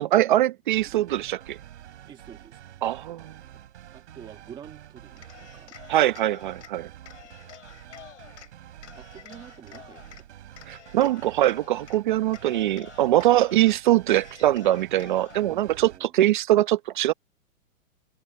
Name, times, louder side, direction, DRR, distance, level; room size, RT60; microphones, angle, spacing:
voice 1, 0.0-1.6 2.8-3.4 5.9-6.9 10.7-17.1, right 14 dB, 35° right, 0.9 m, -22 dB
sound 1, 0.7-16.0, right 11 dB, 55° right, 4.8 m, -48 dB
voice 2, 2.1-2.6 3.9-5.8 9.0-10.2 15.4-16.1, right 9 dB, 10° right, 1.9 m, -47 dB
Cheering, 5.1-6.7 7.0-8.5 8.8-10.2 10.6-12.0 12.3-13.7 14.1-15.5, left 11 dB, 60° left, 8.0 m, -48 dB
hypercardioid pair, 170°, 41 cm